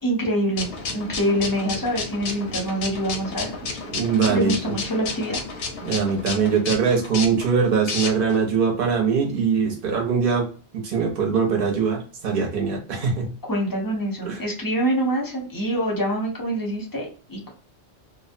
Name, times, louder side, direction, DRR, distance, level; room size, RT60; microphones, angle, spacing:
voice 1, 0.0-3.5 4.3-5.4 13.5-17.5, right 1 dB, 25° left, -1 dB, 0.6 m, -25 dB
sound 1, 0.6-8.4, left 4 dB, 85° left, 0.9 m, -32 dB
voice 2, 3.9-4.8 5.8-10.5 10.7-13.3 14.2-14.4, right 5 dB, 55° right, 0 dB, 0.9 m, -22 dB
2.6 x 2.1 x 2.5 m, 0.37 s
omnidirectional pair, 1.1 m